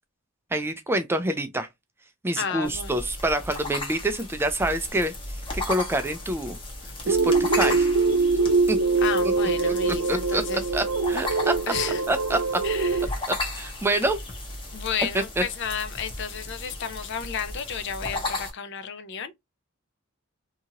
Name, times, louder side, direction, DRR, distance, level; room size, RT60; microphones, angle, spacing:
voice 1, 0.5-1.7 2.2-6.6 7.1-7.9 8.7-8.8 9.7-9.8 10.1-10.4 10.7-11.5 12.1-12.6 13.3-14.2 15.4-15.5, right 1 dB, 10° right, 0.3 m, -27 dB
voice 2, 2.4-3.0 9.0-10.6 11.7-12.0 12.6-13.0 14.7-19.4, left 7 dB, 55° left, 0.4 m, -32 dB
sound 1, 2.6-18.5, left 2 dB, 25° left, 0.9 m, -35 dB
sound 2, 7.1-13.1, right 4 dB, 85° right, 0.5 m, -23 dB
2.8 x 2.5 x 2.7 m
head